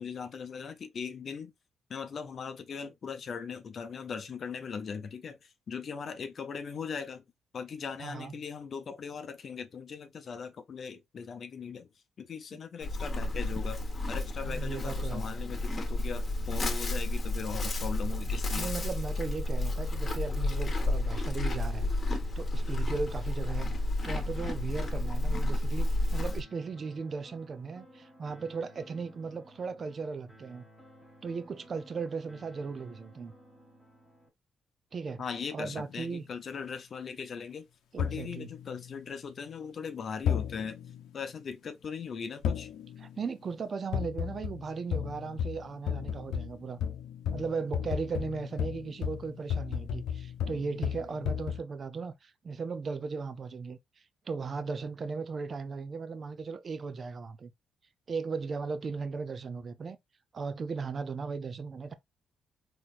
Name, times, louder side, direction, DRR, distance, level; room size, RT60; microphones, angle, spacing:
voice 1, 0.0-1.5 1.9-7.2 7.5-11.9 12.2-13.8 14.1-18.7 35.2-37.7 38.0-40.8 41.1-42.7, left 6 dB, 50° left, 0.7 m, -39 dB
voice 2, 8.0-8.3 14.4-15.3 18.6-21.9 22.4-23.8 24.0-30.6 31.2-33.3 34.9-35.2 35.5-36.2 37.9-38.5 43.0-46.8 47.3-53.8 54.3-57.5 58.1-60.0 60.3-61.9, right 4 dB, 45° right, 0.6 m, -37 dB
Livestock farm animals working animals, 12.8-26.4, left 2 dB, 35° left, 1.4 m, -31 dB
sound 1, 26.3-34.3, equal, ahead, 1.4 m, -56 dB
sound 2, 35.7-36.3 38.0-39.4 40.3-41.1 42.4-43.3 43.9-51.6, left 8 dB, 85° left, 0.7 m, -35 dB
4.0 x 3.1 x 2.5 m
cardioid pair, 90°, 0 cm